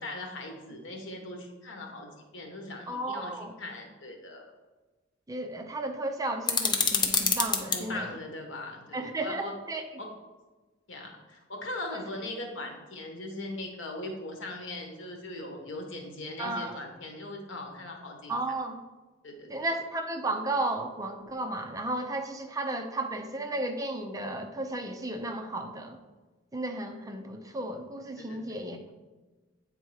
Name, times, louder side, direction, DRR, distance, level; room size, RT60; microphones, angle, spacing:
voice 1, 0.0-4.5 7.7-9.5 10.0-10.2 10.9-18.4 19.2-19.7 28.2-28.6, left 2 dB, 75° left, 3 dB, 1.2 m, -40 dB
voice 2, 2.9-3.5 5.3-8.1 8.9-9.8 11.9-12.0 16.4-16.8 18.3-18.8 19.5-26.0 26.5-28.9, right 2 dB, 20° right, 5 dB, 0.5 m, -34 dB
sound 1, 6.5-7.8, left 5 dB, 25° left, 0.6 m, -26 dB
8.2 x 3.6 x 4.8 m, 1.2 s
head